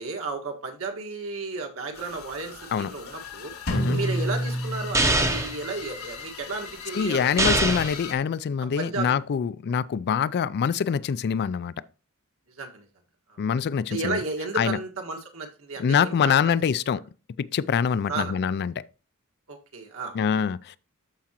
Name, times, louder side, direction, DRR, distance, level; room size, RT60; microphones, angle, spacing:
voice 1, 0.0-3.5 3.9-7.6 8.8-9.1 9.7-9.8 12.6-12.9 13.3-13.4 13.9-16.3 18.1-18.3 19.5-20.2, right 3 dB, 65° right, 1.7 m, -33 dB
sound 1, 1.9-8.1, left 6 dB, 70° left, 1.6 m, -40 dB
Drum, 3.7-5.6, right 1 dB, 90° left, 3.2 m, -28 dB
sound 2, 4.9-5.6 7.4-8.0, right 2 dB, 15° right, 0.7 m, -23 dB
voice 2, 6.9-11.7 13.4-14.2 14.6-14.8 15.8-17.0 17.4-18.7 20.1-20.8, left 7 dB, 50° left, 0.3 m, -25 dB
13.0 x 4.9 x 2.9 m
head